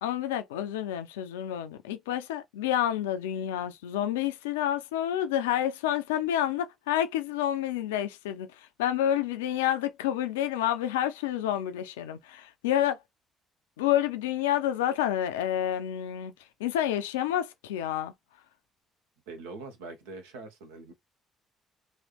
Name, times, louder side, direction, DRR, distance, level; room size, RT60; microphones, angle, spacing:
voice 1, 0.0-13.0 13.8-16.3 16.6-18.1, left 11 dB, 75° left, 0.4 m, -29 dB
voice 2, 19.3-20.9, right 3 dB, 75° right, 0.7 m, -43 dB
3.1 x 2.6 x 2.8 m
figure-of-eight pair, 45°, 0 cm